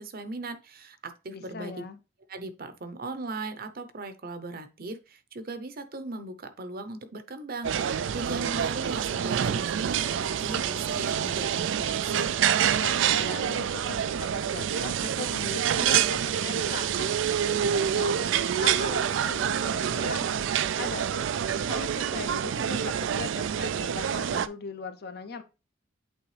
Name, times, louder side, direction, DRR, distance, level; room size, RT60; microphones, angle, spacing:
voice 1, 0.0-1.8 2.3-12.3, right 3 dB, 45° right, 10 dB, 0.8 m, -38 dB
voice 2, 1.3-2.0 12.8-20.4 20.8-25.4, left 4 dB, 50° left, 10 dB, 0.7 m, -40 dB
sound 1, 7.6-24.5, right 8 dB, 65° right, 0.3 m, -27 dB
8.4 x 3.5 x 3.3 m, 0.29 s
head